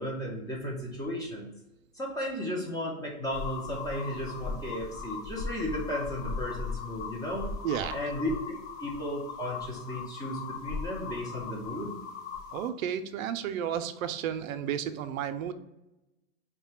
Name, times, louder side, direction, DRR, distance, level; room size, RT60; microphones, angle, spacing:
voice 1, 0.0-1.5 2.0-7.5 7.9-12.0, equal, 10° left, -2 dB, 0.4 m, -34 dB
sound 1, 3.3-12.7, left 5 dB, 70° left, 0.7 m, -38 dB
voice 2, 7.6-8.0 12.5-15.5, right 9 dB, 75° right, 10 dB, 0.5 m, -32 dB
3.2 x 2.2 x 4.3 m, 0.96 s
hypercardioid pair, 125°, 41 cm